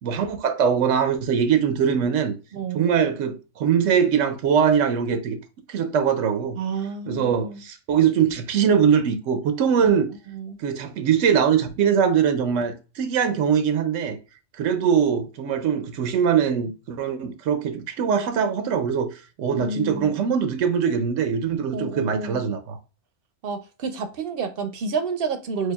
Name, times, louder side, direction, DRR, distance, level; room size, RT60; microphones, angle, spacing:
voice 1, 0.0-2.3 2.7-5.4 5.7-6.6 7.1-10.1 10.6-14.2 14.6-22.8, right 7 dB, 90° right, 0.9 m, -22 dB
voice 2, 2.5-2.9 6.6-7.6 9.8-10.6 19.5-20.1 21.7-22.5 23.4-25.7, right 4 dB, 60° right, 0.7 m, -30 dB
6.5 x 2.2 x 2.2 m
omnidirectional pair, 1.3 m